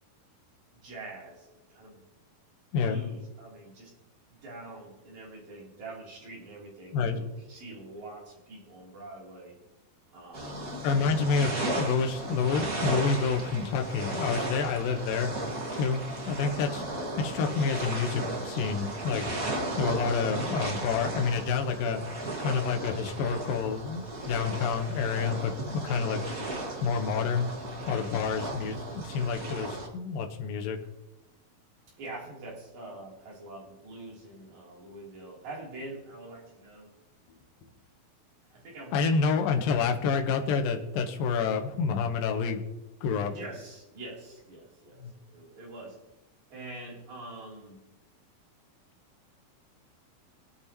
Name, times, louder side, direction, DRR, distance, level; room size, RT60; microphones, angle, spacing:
voice 1, 0.8-2.0 2.7-3.9 4.3-9.6 10.1-11.3 25.8-26.1 32.0-36.9 38.5-39.1 43.3-46.0 46.5-47.8, right 2 dB, 55° right, -3 dB, 4.4 m, -45 dB
sound 1, 10.3-29.9, right 2 dB, 35° right, 1.4 m, -35 dB
voice 2, 10.8-15.3 15.7-16.8 17.2-19.3 19.8-22.0 22.4-26.2 26.8-27.5 27.9-30.8 38.9-42.6 43.0-43.3 45.0-45.1, left 5 dB, 75° left, 4 dB, 2.7 m, -28 dB
23.5 x 8.7 x 2.9 m, 0.97 s
omnidirectional pair, 4.3 m